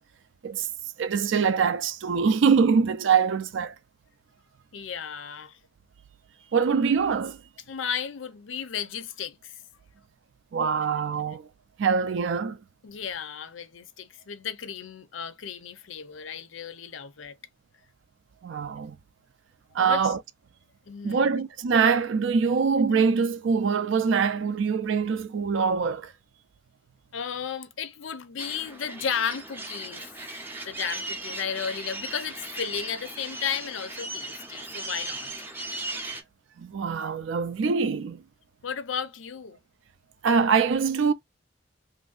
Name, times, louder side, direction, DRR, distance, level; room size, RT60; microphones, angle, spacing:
voice 1, 1.0-3.8 6.5-7.4 10.5-11.5 11.8-12.6 18.4-19.0 19.7-20.2 21.0-26.1 36.6-38.2 40.2-41.1, right 5 dB, 70° right, 0.4 m, -24 dB
voice 2, 4.7-5.6 7.7-9.6 12.8-17.4 19.8-20.1 20.9-21.3 27.1-30.0 30.7-35.3 38.6-39.6, left 7 dB, 80° left, 0.5 m, -34 dB
sound 1, 28.4-36.2, right 2 dB, 10° right, 0.5 m, -37 dB
3.1 x 2.6 x 2.3 m
head